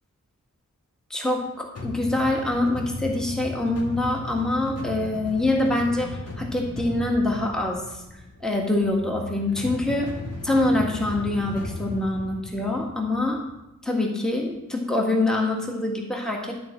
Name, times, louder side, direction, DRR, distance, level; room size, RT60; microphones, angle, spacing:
voice 1, 1.1-6.1 6.4-8.0 8.4-10.1 10.4-13.4 13.8-16.5, left 2 dB, ahead, -1 dB, 1.7 m, -25 dB
sound 1, 1.8-13.7, left 2 dB, 50° left, 1.9 m, -36 dB
12.5 x 4.3 x 7.4 m, 0.96 s
cardioid pair, 50°, 31 cm